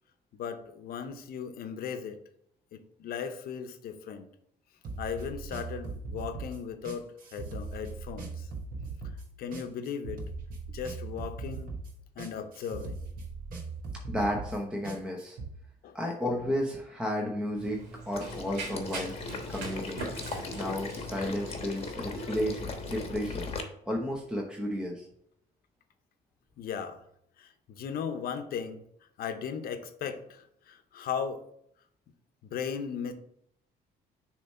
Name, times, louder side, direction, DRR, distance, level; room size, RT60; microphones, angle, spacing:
voice 1, 0.3-2.2 2.7-4.3 5.0-8.5 9.4-10.2 10.7-11.7 12.2-13.0 15.8-16.0 26.6-27.0 27.4-28.8 29.2-31.4 32.4-33.1, left 7 dB, 60° left, 8 dB, 0.8 m, -37 dB
sound 1, 4.8-15.5, right 3 dB, 55° right, 1.1 m, -40 dB
voice 2, 14.1-15.4 15.9-17.8 18.1-19.2 19.5-20.3 20.5-23.5 23.9-25.1, equal, 5° right, -1 dB, 0.8 m, -33 dB
Run, 17.6-23.1, right 3 dB, 80° right, 1.8 m, -42 dB
Water / Liquid, 18.1-23.6, left 4 dB, 35° left, 1.0 m, -38 dB
6.8 x 3.2 x 4.3 m, 0.71 s
cardioid pair, 110°, 17 cm